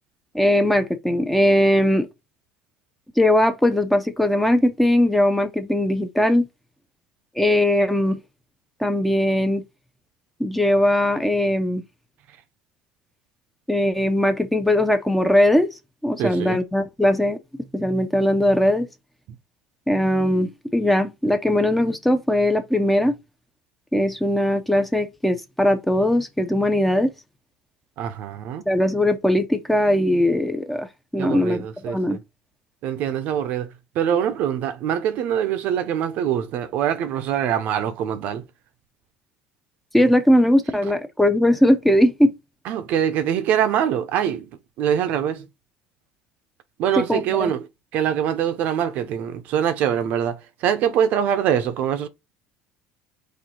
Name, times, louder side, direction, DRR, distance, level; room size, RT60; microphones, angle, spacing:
voice 1, 0.3-2.1 3.2-6.5 7.4-8.2 8.8-9.6 10.4-11.8 13.7-15.7 16.0-17.4 17.7-18.9 19.9-23.1 23.9-27.1 28.7-30.9 31.1-32.2 39.9-42.3 47.0-47.5, left 1 dB, 5° left, 0.6 m, -20 dB
voice 2, 16.2-16.6 28.0-28.6 31.2-32.2 32.8-33.7 34.0-38.4 42.7-44.5 44.8-45.5 46.8-47.7 47.9-52.1, right 9 dB, 55° right, 0.6 m, -23 dB
4.4 x 2.7 x 3.8 m
cardioid pair, 140°, 3 cm